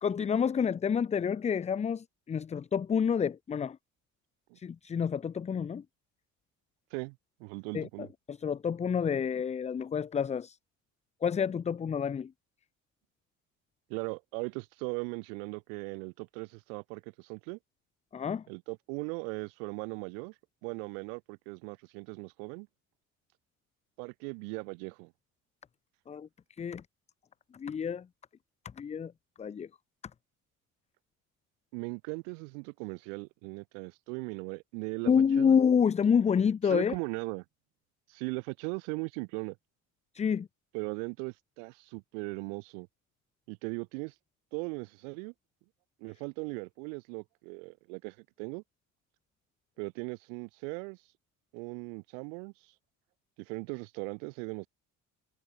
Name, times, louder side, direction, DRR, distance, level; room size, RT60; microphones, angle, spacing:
voice 1, 0.0-3.8 4.6-5.8 7.7-10.6 11.2-12.3 18.1-18.4 26.1-26.3 26.6-26.8 27.5-28.1 28.8-29.1 29.4-29.7 35.1-36.9 40.1-40.5, left 7 dB, 15° left, 0.5 m, -28 dB
voice 2, 6.9-8.1 13.9-17.6 18.5-20.3 20.6-22.7 24.0-25.1 31.7-35.1 35.4-35.6 36.6-37.4 38.1-39.6 40.7-42.9 43.5-44.1 44.5-45.3 46.0-48.6 49.8-51.0 51.5-52.5 53.4-54.7, right 37 dB, 65° right, 1.0 m, -38 dB
figure-of-eight pair, 50°, 42 cm